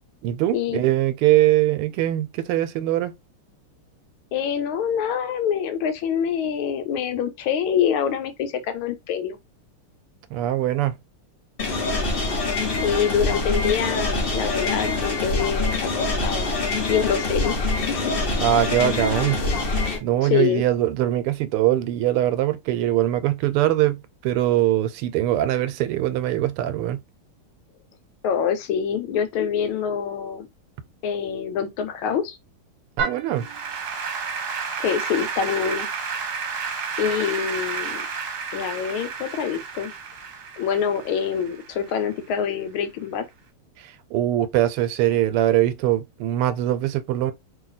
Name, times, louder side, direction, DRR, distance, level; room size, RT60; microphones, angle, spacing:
voice 1, 0.2-3.1 10.3-11.0 18.4-19.4 20.0-27.0 33.0-33.5 44.1-47.3, right 13 dB, 90° right, 1.5 m, -22 dB
voice 2, 4.3-9.4 12.8-16.5 16.9-17.5 17.9-18.1 20.2-20.6 28.2-30.5 31.0-32.4 34.8-35.9 37.0-38.0 38.5-39.9 40.6-43.3, left 8 dB, 75° left, 1.5 m, -25 dB
sound 1, 11.6-20.0, left 3 dB, 50° left, 0.6 m, -25 dB
Applause / Keyboard (musical), 33.0-42.3, right 5 dB, 55° right, 1.3 m, -31 dB
3.2 x 2.7 x 4.0 m
omnidirectional pair, 2.4 m